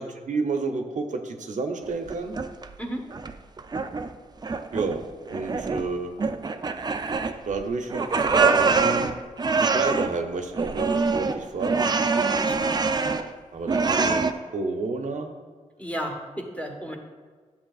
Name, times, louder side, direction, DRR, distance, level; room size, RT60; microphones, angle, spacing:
voice 1, 0.0-2.4 4.7-5.0 5.3-6.1 7.4-9.1 9.6-11.9 13.5-15.3, right 3 dB, 70° right, 5 dB, 0.6 m, -30 dB
sound 1, 1.8-2.7 3.1-4.1 4.4-5.0 5.3-5.9 6.2-7.6 7.9-10.1 10.5-13.3 13.7-14.3, right 4 dB, 30° right, 0.4 m, -24 dB
voice 2, 12.4-12.9 15.8-17.0, equal, 10° left, 1 dB, 1.1 m, -34 dB
10.5 x 6.9 x 2.4 m, 1.5 s
cardioid pair, 70°, 14 cm